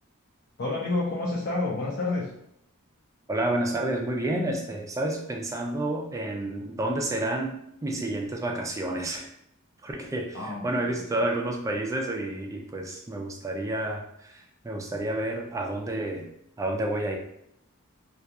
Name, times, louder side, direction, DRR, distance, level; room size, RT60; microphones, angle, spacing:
voice 1, 0.6-2.3 10.3-10.7, left 2 dB, 50° left, -5 dB, 0.5 m, -28 dB
voice 2, 3.3-9.3 9.8-16.3 16.6-17.2, right 1 dB, 15° right, 2 dB, 0.3 m, -30 dB
2.3 x 2.3 x 2.7 m, 0.76 s
head